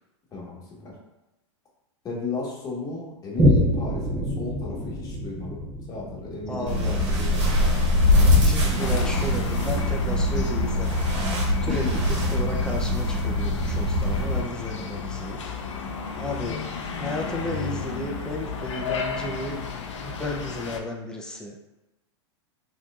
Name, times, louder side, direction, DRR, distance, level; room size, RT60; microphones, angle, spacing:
voice 1, 0.3-0.9 2.0-7.4 11.6-12.0, left 3 dB, 25° left, -4 dB, 1.3 m, -34 dB
Boom, 3.4-10.3 10.8-10.9, equal, 15° right, 1.1 m, -27 dB
voice 2, 6.5-7.0 8.4-11.1 11.6-15.4 16.2-16.6 16.9-19.6 20.0-21.7, left 1 dB, 5° left, -1 dB, 0.6 m, -33 dB
sound 1, 6.7-14.4, left 1 dB, 75° right, 1.4 m, -22 dB
sound 2, 8.8-20.8, left 5 dB, 85° left, 0.6 m, -34 dB
4.2 x 3.0 x 2.4 m, 0.97 s
hypercardioid pair, 120°, 15 cm